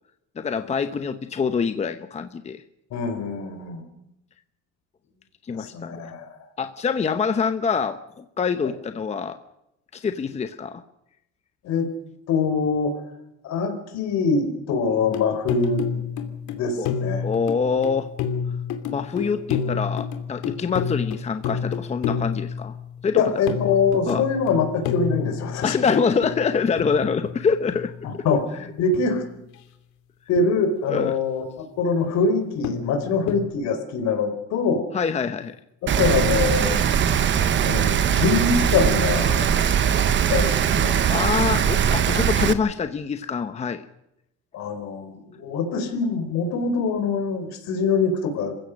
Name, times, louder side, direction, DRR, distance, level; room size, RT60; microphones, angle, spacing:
voice 1, 0.4-2.6 5.4-6.1 6.6-9.4 9.9-10.8 16.8-16.9 17.2-18.1 18.8-22.8 23.0-23.3 24.1-24.2 25.6-28.2 30.9-31.1 34.9-35.6 41.1-43.9, left 5 dB, 20° left, 9 dB, 0.9 m, -25 dB
voice 2, 2.9-3.8 5.5-6.4 11.6-11.9 12.3-13.0 13.4-15.8 16.5-17.3 19.2-19.3 23.1-25.8 28.0-29.2 30.3-31.4 31.8-34.9 35.9-37.0 37.6-39.5 40.3-40.9 44.5-48.6, left 4 dB, 65° left, 7 dB, 4.6 m, -24 dB
sound 1, 15.0-28.3 28.9-29.6 30.4-30.5 32.6-33.5, left 7 dB, 80° left, 2.8 m, -30 dB
Rain, 35.9-42.5, right 8 dB, 40° right, 1.3 m, -21 dB
27.0 x 15.5 x 6.5 m, 0.85 s
cardioid pair, 150°, 29 cm